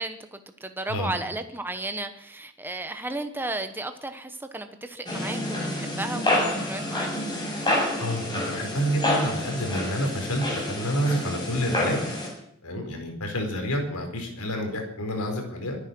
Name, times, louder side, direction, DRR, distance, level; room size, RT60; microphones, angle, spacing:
voice 1, 0.0-7.1, right 2 dB, 10° right, 8 dB, 0.9 m, -34 dB
sound 1, 5.1-12.3, left 1 dB, 20° left, 6.8 m, -28 dB
voice 2, 8.0-12.0 12.6-15.8, equal, 85° left, 3 dB, 4.7 m, -29 dB
24.0 x 9.8 x 6.1 m, 0.70 s
head